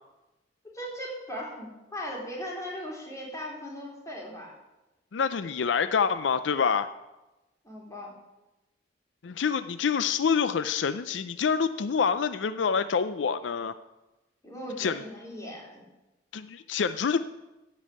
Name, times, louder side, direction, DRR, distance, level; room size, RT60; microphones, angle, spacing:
voice 1, 0.7-4.5 7.6-8.1 14.4-15.8, equal, 20° left, -3 dB, 3.6 m, -38 dB
voice 2, 5.1-6.9 9.2-13.7 14.8-15.0 16.3-17.2, left 6 dB, 80° left, 12 dB, 0.5 m, -26 dB
15.0 x 5.5 x 8.5 m, 1.0 s
head